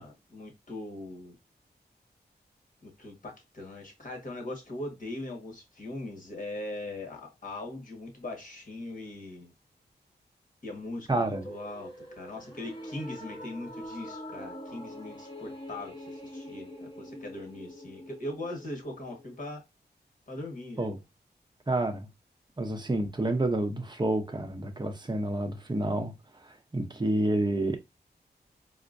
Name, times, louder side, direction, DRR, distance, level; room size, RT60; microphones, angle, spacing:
voice 1, 0.0-1.4 2.8-9.5 10.6-19.6 20.3-20.9, left 2 dB, 50° left, 1.5 m, -40 dB
voice 2, 11.1-11.4 20.8-21.0 21.7-22.1 22.6-26.1 26.7-27.8, right 1 dB, 25° right, 0.8 m, -29 dB
sound 1, 11.3-19.6, equal, 25° left, 1.3 m, -44 dB
4.3 x 2.1 x 2.6 m
cardioid pair, 60°, 18 cm